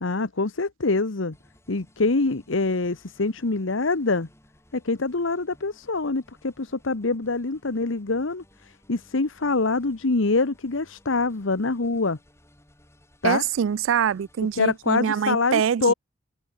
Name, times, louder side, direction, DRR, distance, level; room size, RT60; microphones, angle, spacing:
voice 1, 0.0-1.3 1.7-4.3 4.7-12.2 13.2-13.4 14.6-15.9, left 3 dB, 80° left, 1.1 m, -25 dB
sound 1, 1.3-14.9, left 1 dB, 15° left, 6.5 m, -58 dB
voice 2, 13.2-15.9, right 8 dB, 75° right, 0.4 m, -24 dB
head